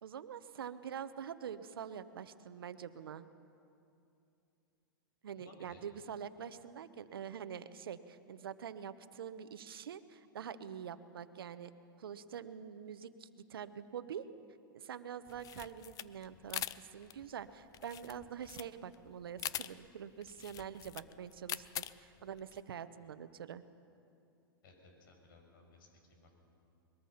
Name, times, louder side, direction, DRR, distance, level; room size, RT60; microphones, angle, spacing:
voice 1, 0.0-3.3 5.2-11.7 12.0-14.3 14.7-23.6, right 8 dB, 80° right, 12 dB, 1.0 m, -45 dB
voice 2, 5.4-5.8 24.6-26.3, left 2 dB, 70° left, 2 dB, 6.3 m, -60 dB
sound 1, 15.3-22.6, left 13 dB, 30° left, 0.5 m, -44 dB
22.0 x 21.5 x 5.8 m, 2.7 s
hypercardioid pair, 110°, 12 cm